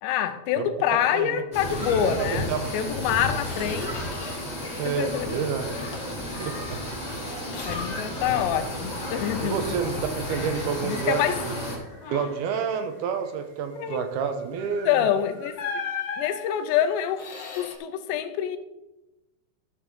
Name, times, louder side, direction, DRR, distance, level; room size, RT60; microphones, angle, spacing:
voice 1, 0.0-4.1 4.6-5.5 7.7-9.8 10.3-10.4 10.8-11.4 13.8-14.0 14.9-15.6 16.2-17.3 17.6-18.6, left 10 dB, 85° left, 3.0 m, -26 dB
spooky whistling, 1.4-15.9, right 2 dB, 35° right, 2.8 m, -53 dB
sound 1, 1.5-11.8, left 1 dB, 15° left, 1.8 m, -32 dB
voice 2, 2.0-2.7 4.8-5.7 6.4-6.8 9.4-11.6 12.1-14.9, right 7 dB, 75° right, 2.6 m, -29 dB
Squeak, 2.6-2.8 3.2-4.6 4.9-5.5 5.9-8.7 9.0-10.8 11.3-11.5 11.9-12.5 14.7-14.8 15.5-17.8, left 5 dB, 60° left, 1.7 m, -39 dB
13.5 x 6.7 x 3.8 m
omnidirectional pair, 4.9 m